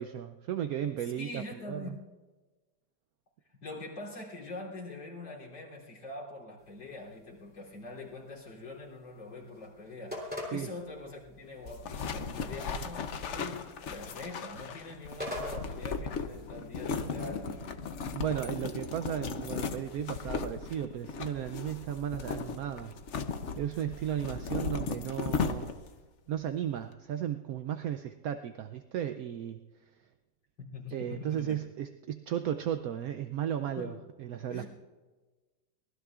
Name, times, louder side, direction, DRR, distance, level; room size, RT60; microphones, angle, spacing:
voice 1, 0.0-2.0 10.5-10.7 18.1-23.0 23.3-25.7 26.3-29.6 30.9-34.6, right 10 dB, 70° right, 8 dB, 0.8 m, -35 dB
voice 2, 1.0-2.0 3.6-17.7 30.6-31.6 33.7-34.0 34.5-34.7, left 2 dB, 85° left, -5 dB, 4.1 m, -44 dB
sound 1, 6.6-20.3, left 1 dB, 5° right, 3.2 m, -47 dB
sound 2, 11.7-26.0, left 5 dB, 55° left, 0.8 m, -36 dB
24.0 x 19.5 x 2.4 m, 1.3 s
omnidirectional pair, 2.0 m